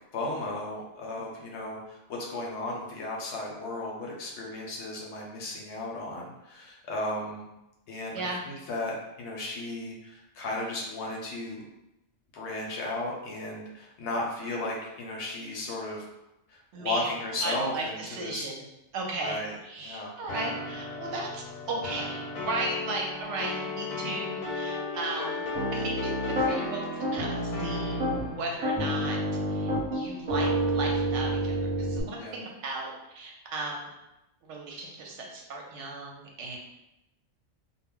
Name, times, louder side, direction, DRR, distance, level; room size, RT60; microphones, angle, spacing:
voice 1, 0.1-7.5 7.9-11.6 12.3-16.0 16.5-18.5 19.2-19.5 19.8-20.1 32.2-32.4, left 2 dB, 65° left, -2 dB, 0.8 m, -35 dB
voice 2, 8.1-8.5 16.7-17.1 17.4-18.7 18.9-28.0 28.3-29.2 29.5-33.9 34.4-36.6, right 2 dB, 65° right, -1 dB, 0.8 m, -36 dB
sound 1, 20.3-28.6, left 3 dB, 90° left, 1.0 m, -35 dB
Piano, 25.5-26.5 27.0-28.3 28.6-32.0, right 1 dB, 35° right, 0.8 m, -28 dB
2.2 x 2.0 x 3.5 m, 0.93 s
omnidirectional pair, 1.4 m